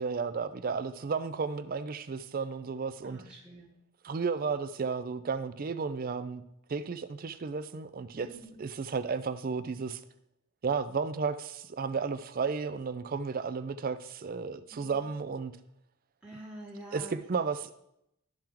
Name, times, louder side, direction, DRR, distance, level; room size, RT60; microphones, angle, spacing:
voice 1, 0.0-3.2 4.0-6.4 6.7-8.3 8.6-10.0 10.6-15.5 16.9-17.7, right 5 dB, 40° right, 0.4 m, -33 dB
voice 2, 3.0-3.7 8.1-8.6 14.7-15.0 16.2-17.1, right 1 dB, 5° right, 1.0 m, -47 dB
12.0 x 4.5 x 3.7 m
head